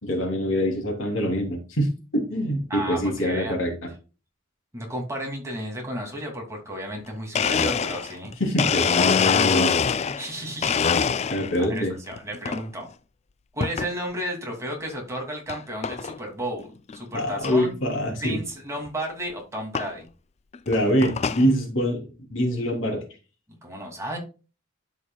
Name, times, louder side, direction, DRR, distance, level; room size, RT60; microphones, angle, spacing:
voice 1, 0.0-3.8 8.4-9.7 10.0-10.1 11.3-11.9 17.1-18.4 20.7-22.0 22.3-23.0, equal, 75° left, 1 dB, 2.9 m, -24 dB
voice 2, 2.7-3.6 4.7-8.3 10.2-11.0 11.6-12.9 13.5-17.7 18.2-20.1 23.6-24.2, right 1 dB, 15° right, 0 dB, 2.5 m, -33 dB
Domestic sounds home sounds, 7.0-7.1 7.3-10.3 10.6-11.6 12.1-12.6 13.6-13.9 14.5-14.6 15.5-15.6 15.8-16.2 16.6-16.7 16.9-17.0 17.4-17.5 18.9-19.0 19.7-19.9 20.5-21.5, left 6 dB, 30° left, 0.3 m, -24 dB
12.5 x 5.0 x 2.3 m, 0.33 s
head